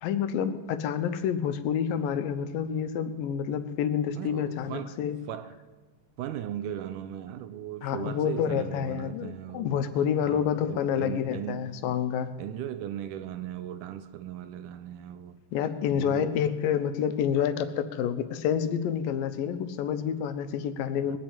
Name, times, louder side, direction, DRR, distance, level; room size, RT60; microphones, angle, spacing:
voice 1, 0.0-5.2 7.8-12.3 15.5-21.2, left 8 dB, 85° left, 2.6 m, -28 dB
voice 2, 4.2-5.0 5.3-5.6 6.2-9.9 10.2-11.8 12.4-15.4 15.9-16.4 20.9-21.2, right 11 dB, 80° right, 2.1 m, -38 dB
21.0 x 7.5 x 8.9 m
omnidirectional pair, 3.9 m